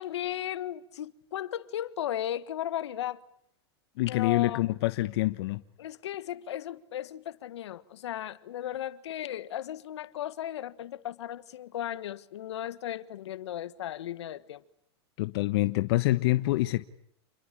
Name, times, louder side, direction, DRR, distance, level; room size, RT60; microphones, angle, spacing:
voice 1, 0.0-3.2 4.1-4.7 5.8-14.6, left 11 dB, 80° left, 1.6 m, -36 dB
voice 2, 4.0-5.6 15.2-16.8, left 18 dB, 65° left, 1.2 m, -26 dB
29.0 x 22.0 x 8.8 m
hypercardioid pair, 115°, 14 cm